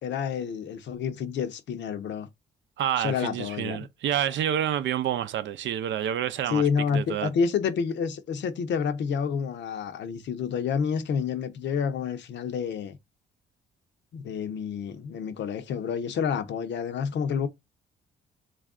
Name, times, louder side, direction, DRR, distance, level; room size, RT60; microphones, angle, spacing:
voice 1, 0.0-2.3 3.0-3.8 6.5-13.0 14.1-17.5, left 6 dB, 65° left, 0.7 m, -29 dB
voice 2, 2.8-7.3, right 10 dB, 70° right, 0.5 m, -28 dB
3.3 x 2.4 x 3.6 m
cardioid pair, 90°, 20 cm